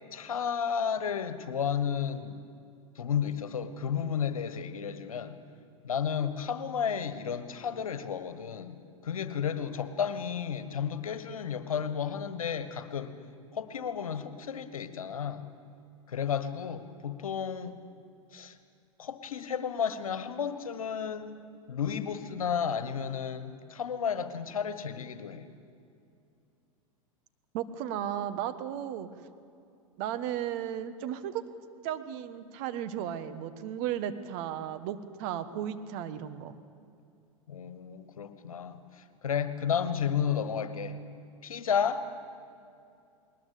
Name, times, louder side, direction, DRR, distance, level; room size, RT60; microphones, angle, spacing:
voice 1, 0.1-2.4 2.9-5.4 5.8-13.2 13.5-15.5 16.1-17.8 18.3-18.5 19.0-21.4 21.7-25.4 37.5-40.9 41.4-42.0, left 7 dB, 80° left, 12 dB, 1.5 m, -32 dB
voice 2, 27.5-29.1 30.0-31.4 31.8-36.5, right 10 dB, 50° right, 11 dB, 1.4 m, -35 dB
20.0 x 20.0 x 8.5 m, 2.5 s
hypercardioid pair, 100°, 18 cm